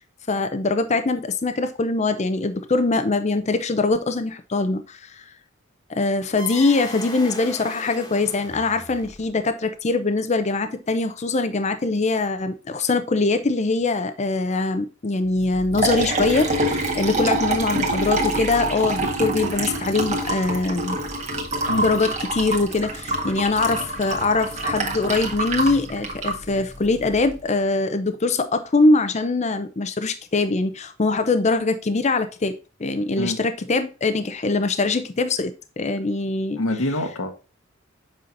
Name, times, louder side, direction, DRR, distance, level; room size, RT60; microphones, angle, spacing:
voice 1, 0.3-5.2 5.9-21.0 21.8-32.5 32.8-36.6, left 3 dB, 35° left, 0.6 m, -23 dB
sound 1, 6.4-9.5, left 1 dB, 20° left, 1.4 m, -38 dB
Liquid, 15.4-27.3, right 1 dB, 35° right, 1.6 m, -26 dB
voice 2, 36.6-37.3, left 1 dB, 90° left, 1.4 m, -25 dB
7.7 x 5.6 x 2.6 m
head